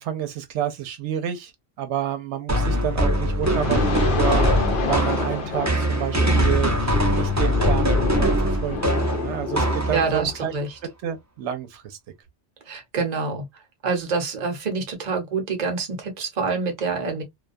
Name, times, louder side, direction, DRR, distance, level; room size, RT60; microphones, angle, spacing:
voice 1, 0.0-1.5 1.8-4.5 4.9-10.6 11.0-12.0, right 10 dB, 85° right, 0.9 m, -29 dB
sound 1, 2.5-10.3, equal, 20° right, 0.5 m, -22 dB
sound 2, 3.4-10.4, left 4 dB, 60° left, 0.6 m, -29 dB
voice 2, 9.9-10.7 12.7-13.4 13.8-17.2, right 4 dB, 45° right, 0.8 m, -26 dB
2.3 x 2.2 x 2.4 m
omnidirectional pair, 1.2 m